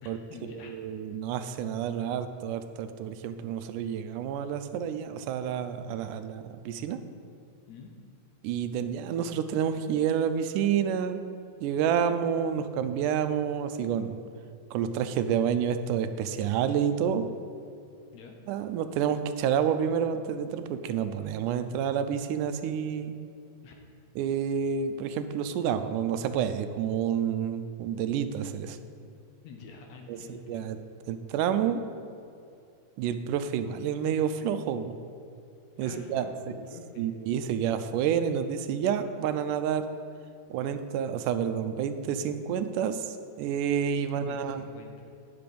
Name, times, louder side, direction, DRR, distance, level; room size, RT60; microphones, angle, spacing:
voice 1, 0.0-0.8 1.9-2.1 7.7-7.9 18.1-18.4 23.6-23.8 29.4-30.8 35.8-37.1 44.0-45.1, left 4 dB, 70° left, 2 dB, 2.0 m, -47 dB
voice 2, 0.6-7.0 8.4-11.2 11.6-14.2 14.7-17.2 18.5-23.2 24.2-28.8 30.1-30.8 31.1-31.8 33.0-35.0 35.8-36.5 37.0-39.8 40.5-44.7, right 8 dB, 85° right, 9 dB, 2.1 m, -29 dB
10.0 x 6.7 x 5.2 m, 2.5 s
omnidirectional pair, 3.6 m